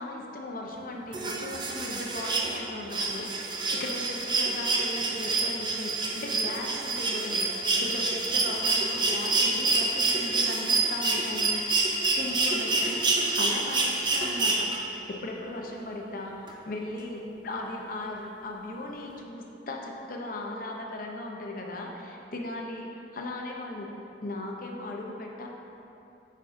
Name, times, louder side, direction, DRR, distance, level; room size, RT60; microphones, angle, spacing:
voice 1, 0.0-7.5 7.8-11.6 12.2-14.7 15.1-16.3 16.6-23.9 24.2-25.5, left 1 dB, 50° left, 0 dB, 0.7 m, -37 dB
sound 1, 1.1-15.0 16.5-16.6, right 3 dB, 25° right, 0.5 m, -27 dB
8.4 x 5.4 x 2.6 m, 2.8 s
head